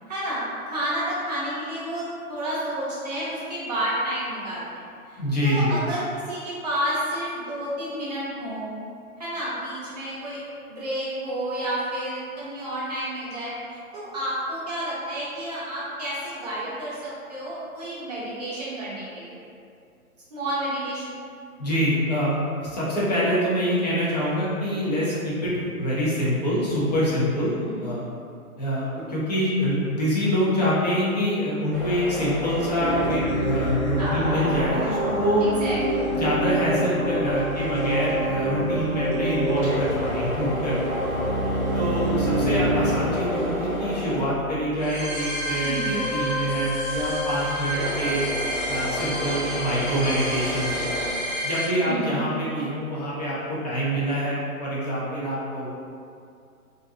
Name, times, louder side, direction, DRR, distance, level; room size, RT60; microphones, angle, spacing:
voice 1, 0.1-0.4 0.7-8.7 9.2-10.4 10.7-19.4 20.3-21.2 27.5-28.0 34.0-34.4 35.4-36.2 42.8-42.9 45.6-46.0 51.9-52.5, right 1 dB, 30° right, -9 dB, 0.6 m, -30 dB
voice 2, 5.2-5.8 21.6-28.0 28.6-35.4 35.9-41.0 41.7-48.2 48.7-50.9 51.4-55.7, equal, 30° left, -8 dB, 0.5 m, -25 dB
sound 1, 31.7-51.1, left 1 dB, 10° right, 1.2 m, -34 dB
sound 2, 32.8-51.7, equal, 65° left, 1.1 m, -27 dB
2.4 x 2.2 x 2.5 m, 2.4 s
hypercardioid pair, 150°, 44 cm